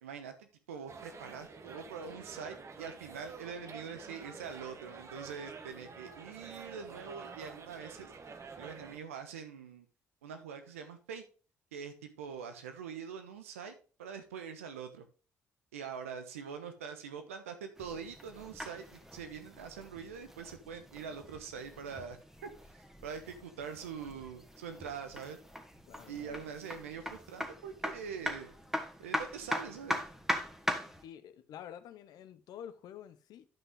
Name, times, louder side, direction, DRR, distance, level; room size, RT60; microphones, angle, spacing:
voice 1, 0.0-8.1 8.6-9.9 10.2-11.2 11.7-13.7 14.0-15.1 15.7-22.2 22.4-25.4 26.1-28.5 29.0-30.0, right 6 dB, 90° right, 1.0 m, -44 dB
sound 1, 0.9-9.0, right 4 dB, 40° right, 1.2 m, -49 dB
sound 2, 17.7-31.0, equal, 5° right, 1.8 m, -41 dB
voice 2, 25.9-26.4 31.0-33.5, left 9 dB, 65° left, 0.8 m, -49 dB
10.5 x 5.6 x 3.6 m
hypercardioid pair, 45°, 7 cm